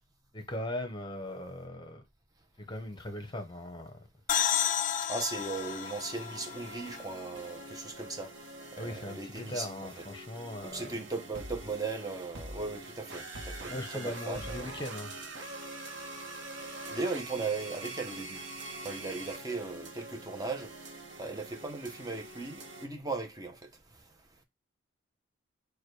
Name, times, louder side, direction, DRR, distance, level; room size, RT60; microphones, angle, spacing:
voice 1, 0.3-2.0 2.6-4.0 8.8-11.1 13.7-15.1, left 1 dB, 20° left, 0.9 m, -39 dB
sound 1, 4.3-7.8, left 9 dB, 40° left, 0.3 m, -32 dB
voice 2, 5.1-8.3 8.7-9.7 10.0-10.1 10.6-14.8 16.9-18.4 18.8-23.7, right 3 dB, 20° right, 0.7 m, -37 dB
sound 2, 5.3-22.9, right 2 dB, 60° right, 0.9 m, -44 dB
4.8 x 2.3 x 4.7 m
head